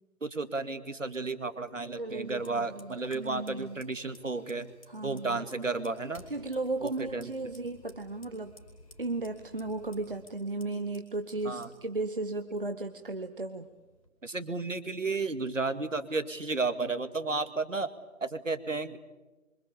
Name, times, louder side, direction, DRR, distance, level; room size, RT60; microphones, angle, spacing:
voice 1, 0.2-4.7 5.0-6.2 6.8-7.3 11.4-11.7 14.2-17.9 18.2-19.0, right 3 dB, 65° right, 10 dB, 2.3 m, -33 dB
voice 2, 2.0-3.8 4.9-5.4 6.3-8.5 9.0-13.7, right 2 dB, 40° right, 6 dB, 1.2 m, -35 dB
Fire, 2.2-14.1, left 1 dB, 25° left, 4.8 m, -57 dB
26.5 x 25.0 x 8.5 m, 1.1 s
figure-of-eight pair, 175°, 42 cm